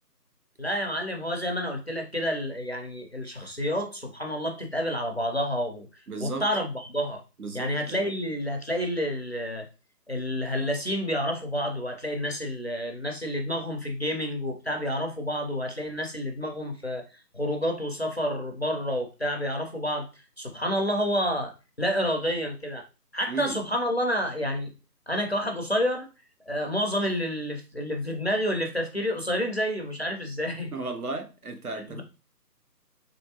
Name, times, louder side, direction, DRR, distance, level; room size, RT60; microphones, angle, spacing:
voice 1, 0.6-5.9 6.2-7.2 7.5-9.7 10.1-20.1 20.4-22.8 23.1-24.7 25.1-26.1 26.5-30.7 31.9-32.0, equal, 40° left, 0.5 m, -29 dB
voice 2, 6.1-6.5 7.4-8.1 23.3-23.6 30.7-32.0, right 3 dB, 60° right, 0.8 m, -34 dB
3.4 x 2.6 x 2.8 m
figure-of-eight pair, 160°, 49 cm